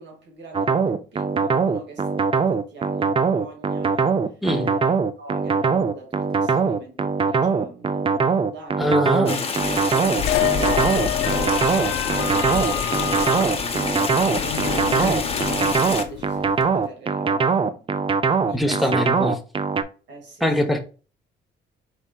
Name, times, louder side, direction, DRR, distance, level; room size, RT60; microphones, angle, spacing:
voice 1, 0.0-17.9 18.2-19.1 20.1-20.7, right 3 dB, 65° right, 1.9 m, -42 dB
sound 1, 0.5-19.8, right 5 dB, 25° right, 0.4 m, -21 dB
voice 2, 8.8-9.4 15.0-15.2 18.5-19.4 20.4-20.8, left 1 dB, ahead, 0.9 m, -23 dB
sound 2, 9.3-16.0, left 4 dB, 30° left, 0.9 m, -28 dB
sound 3, 10.2-16.7, left 12 dB, 80° left, 0.4 m, -28 dB
4.6 x 4.2 x 2.3 m
cardioid pair, 90°, 20 cm